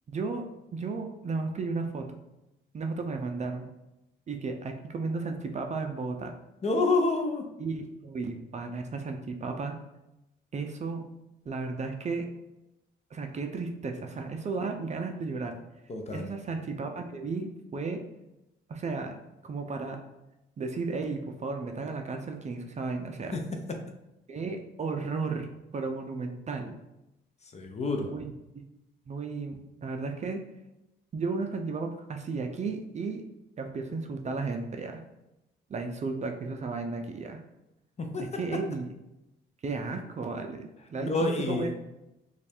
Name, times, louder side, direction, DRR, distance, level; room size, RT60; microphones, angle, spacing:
voice 1, 0.1-2.2 2.7-3.7 4.3-6.3 7.6-9.8 10.5-11.1 11.5-12.3 13.1-15.5 16.1-18.0 18.7-20.0 20.6-23.4 24.3-25.5 25.7-26.8 28.0-28.6 29.1-30.4 31.1-33.3 33.6-35.0 35.7-37.4 38.3-38.9 39.6-41.7, right 4 dB, 35° right, 4 dB, 0.4 m, -34 dB
voice 2, 6.6-7.4 15.9-16.3 23.3-23.4 23.7-23.8 27.5-28.1 38.0-38.3 41.0-41.7, left 3 dB, 35° left, 3 dB, 0.6 m, -28 dB
3.1 x 2.4 x 4.3 m, 0.92 s
cardioid pair, 90°, 20 cm